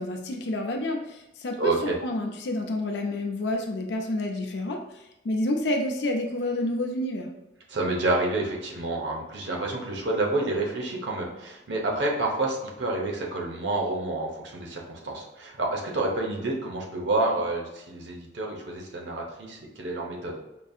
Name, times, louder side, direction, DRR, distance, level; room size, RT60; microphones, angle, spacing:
voice 1, 0.0-7.3, left 1 dB, 70° left, 2 dB, 0.5 m, -29 dB
voice 2, 1.6-1.9 7.7-20.3, right 2 dB, 85° right, -1 dB, 0.9 m, -29 dB
5.2 x 2.7 x 2.4 m, 0.94 s
head